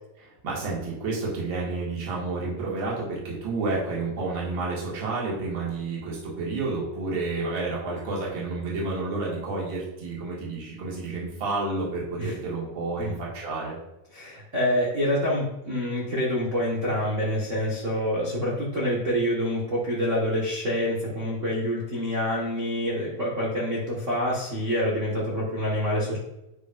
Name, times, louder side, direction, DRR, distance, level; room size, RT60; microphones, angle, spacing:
voice 1, 0.2-13.8, right 3 dB, 40° right, -5 dB, 2.2 m, -30 dB
voice 2, 14.1-26.2, equal, 85° right, -5 dB, 0.6 m, -27 dB
9.3 x 5.4 x 2.5 m, 0.92 s
omnidirectional pair, 3.9 m